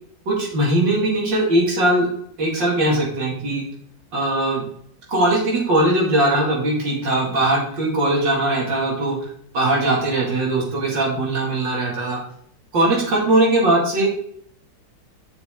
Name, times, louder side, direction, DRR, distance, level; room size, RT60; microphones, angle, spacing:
voice 1, 0.3-2.1 2.4-3.6 4.1-4.6 5.1-9.2 9.5-12.2 12.7-14.1, right 1 dB, 85° right, -3 dB, 3.0 m, -20 dB
7.2 x 5.9 x 3.6 m, 0.64 s
omnidirectional pair, 2.0 m